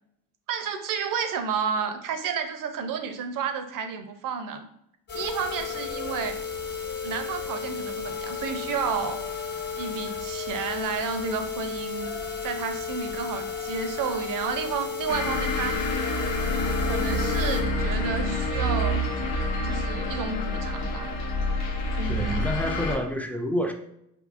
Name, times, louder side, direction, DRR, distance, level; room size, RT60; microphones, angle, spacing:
voice 1, 0.5-4.7 5.1-6.4 7.0-9.2 9.8-12.1 12.4-15.8 16.8-19.0 19.6-21.1 21.9-22.5, right 6 dB, 65° right, 0.6 m, -31 dB
sound 1, 5.1-17.6, left 6 dB, 30° left, 1.0 m, -33 dB
sound 2, 15.1-23.0, left 1 dB, 85° left, 0.7 m, -27 dB
voice 2, 22.1-23.7, equal, 5° left, 0.3 m, -28 dB
3.7 x 2.7 x 2.4 m
cardioid pair, 80°, 36 cm